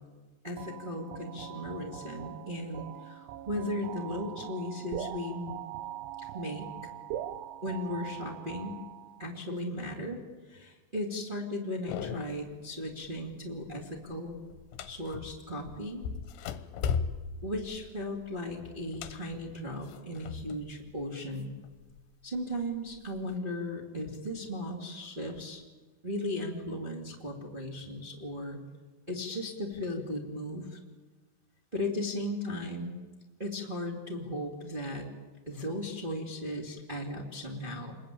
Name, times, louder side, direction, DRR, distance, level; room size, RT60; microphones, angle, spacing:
voice 1, 0.4-5.5 6.3-6.7 7.6-8.8 9.2-10.2 10.5-14.4 14.9-16.0 17.4-21.5 22.2-25.6 26.0-28.6 29.1-30.8 31.7-33.0 33.4-35.1 35.5-38.0, left 1 dB, 15° right, 0 dB, 2.0 m, -36 dB
sound 1, 0.6-9.3, right 11 dB, 75° right, 3.3 m, -42 dB
sound 2, 11.9-12.5 12.9-13.3 13.6-15.5 16.0-20.7 21.0-22.0 22.6-23.4, left 6 dB, 70° left, 3.1 m, -37 dB
28.5 x 21.5 x 8.8 m, 1.3 s
omnidirectional pair, 5.8 m